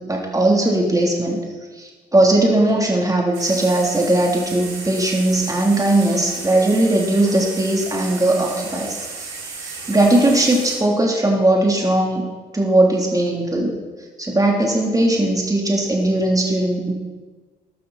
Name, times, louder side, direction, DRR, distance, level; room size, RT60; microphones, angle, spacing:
voice 1, 0.1-1.4 1.8-9.3 9.6-12.2 12.5-13.7 14.2-16.9, right 1 dB, 15° right, -1 dB, 3.4 m, -18 dB
sound 1, 3.3-10.8, right 4 dB, 80° right, 3.1 m, -34 dB
13.0 x 12.5 x 4.4 m, 1.3 s
hypercardioid pair, 45°, 21 cm